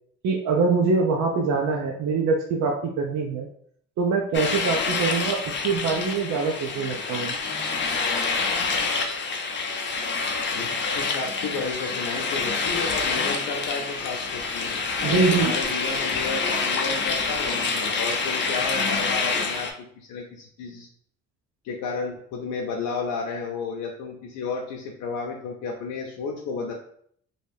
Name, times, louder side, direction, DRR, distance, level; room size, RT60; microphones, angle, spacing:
voice 1, 0.2-3.5 4.0-5.4 5.6-7.3 15.0-15.5, right 4 dB, 65° right, 1 dB, 0.5 m, -24 dB
sound 1, 4.3-19.7, left 4 dB, 40° left, 0.5 m, -27 dB
voice 2, 10.9-19.7 20.0-20.9 21.6-26.7, left 4 dB, 90° left, 0 dB, 0.5 m, -32 dB
2.5 x 2.3 x 3.3 m, 0.62 s
cardioid pair, 90°, 30 cm